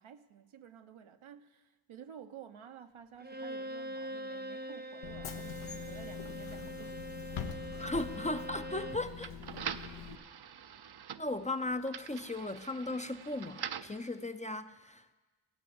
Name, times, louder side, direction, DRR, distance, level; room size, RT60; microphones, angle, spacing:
voice 1, 0.0-6.9 7.5-7.7 10.0-10.3, right 8 dB, 75° right, 1.0 m, -52 dB
Bowed string instrument, 3.2-9.1, right 1 dB, 20° right, 0.9 m, -43 dB
Bus / Engine, 5.0-10.2, left 7 dB, 75° left, 1.1 m, -44 dB
voice 2, 7.8-9.4 11.2-15.1, left 2 dB, 15° left, 0.6 m, -37 dB
sound 1, 8.1-14.0, right 8 dB, 50° right, 0.7 m, -45 dB
16.0 x 7.6 x 8.7 m
cardioid pair, 45°, 50 cm